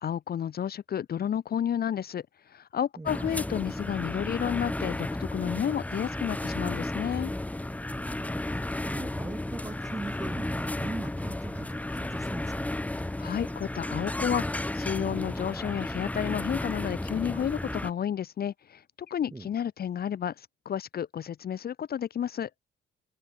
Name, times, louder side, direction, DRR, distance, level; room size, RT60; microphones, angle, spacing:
voice 1, 0.0-2.2 2.5-7.3 13.2-22.5, left 9 dB, 50° left, 0.9 m, -31 dB
voice 2, 3.0-3.5 7.9-12.8 19.3-19.5, right 2 dB, 15° right, 2.3 m, -40 dB
sound 1, 3.1-17.9, left 1 dB, 5° left, 0.7 m, -33 dB
cardioid pair, 90°, 20 cm